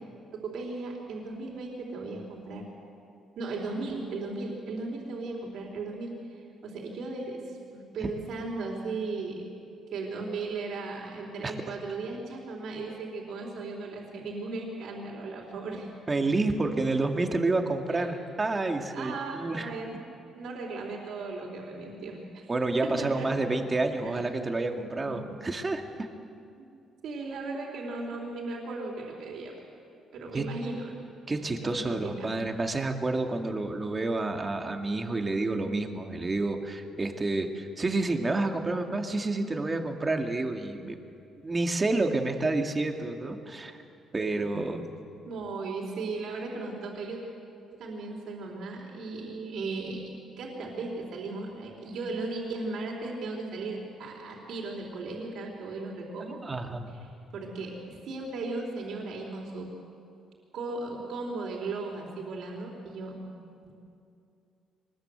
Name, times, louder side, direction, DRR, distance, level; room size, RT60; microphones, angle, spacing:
voice 1, 0.3-2.7 3.4-9.5 9.9-15.9 17.9-18.1 18.9-20.1 20.3-22.5 22.8-23.5 24.0-24.2 25.0-25.3 26.6-26.7 27.0-29.5 30.1-31.0 31.6-32.3 44.5-44.6 45.3-47.2 47.7-50.1 50.4-56.4 57.3-59.7 60.5-63.3 63.6-63.7, right 3 dB, 70° right, -1 dB, 4.2 m, -36 dB
voice 2, 16.1-19.7 22.5-26.1 30.3-30.5 31.3-41.0 41.4-43.8 44.1-44.9 56.4-56.9, right 2 dB, 25° right, 4 dB, 2.1 m, -29 dB
23.5 x 21.0 x 8.2 m, 2.5 s
cardioid pair, 110°, 0 cm